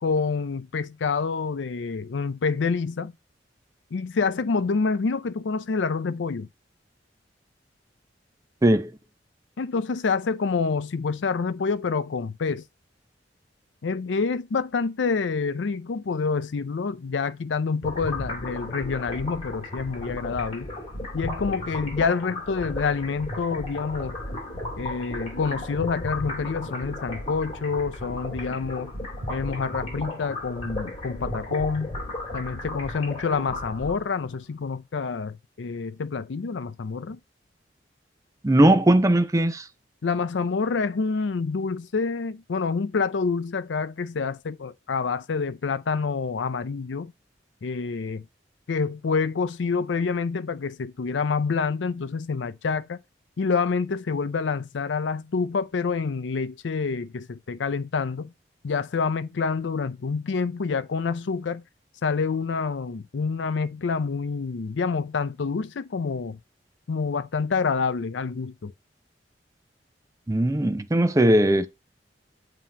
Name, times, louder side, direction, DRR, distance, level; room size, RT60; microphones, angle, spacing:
voice 1, 0.0-3.1 3.9-6.5 9.6-12.6 13.8-20.7 21.1-24.2 24.8-28.9 29.3-32.0 32.3-37.2 40.0-47.1 47.6-48.3 48.7-53.0 53.4-58.3 58.6-61.6 62.0-66.4 66.9-68.7, left 5 dB, 85° left, 0.5 m, -27 dB
sound 1, 17.8-34.3, left 1 dB, 30° left, 2.7 m, -35 dB
voice 2, 38.4-39.6 70.3-71.7, right 1 dB, 20° right, 0.5 m, -19 dB
7.5 x 2.9 x 5.0 m
head